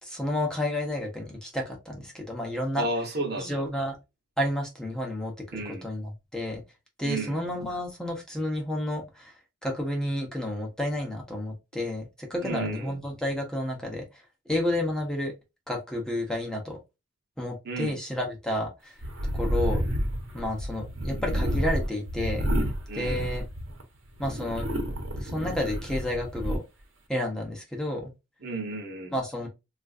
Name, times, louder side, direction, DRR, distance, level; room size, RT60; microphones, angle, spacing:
voice 1, 0.0-2.9 3.4-3.9 4.4-6.6 7.0-9.3 9.6-14.2 14.5-15.3 15.7-16.8 17.4-18.9 19.3-19.8 20.3-22.5 22.9-23.4 24.2-24.6 25.2-26.6 27.1-28.1 29.1-29.5, left 1 dB, 5° left, 0.8 m, -31 dB
voice 2, 2.7-3.6 5.5-5.9 7.0-7.4 12.4-13.0 17.6-18.0 22.9-23.3 28.4-29.1, right 2 dB, 55° right, 1.0 m, -33 dB
sound 1, 19.0-23.8 24.2-26.6, equal, 75° right, 1.0 m, -30 dB
3.7 x 2.5 x 2.4 m
head